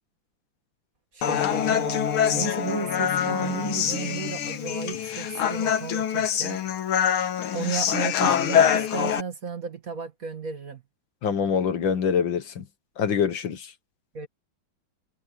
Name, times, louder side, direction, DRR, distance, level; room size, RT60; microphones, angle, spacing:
voice 1, 1.1-6.6 7.5-10.8 14.1-14.3, right 5 dB, 45° right, 2.2 m, -34 dB
Human voice, 1.2-9.2, left 9 dB, 85° left, 2.1 m, -25 dB
voice 2, 11.2-12.7 13.0-13.7, left 7 dB, 65° left, 2.0 m, -25 dB
omnidirectional pair, 2.3 m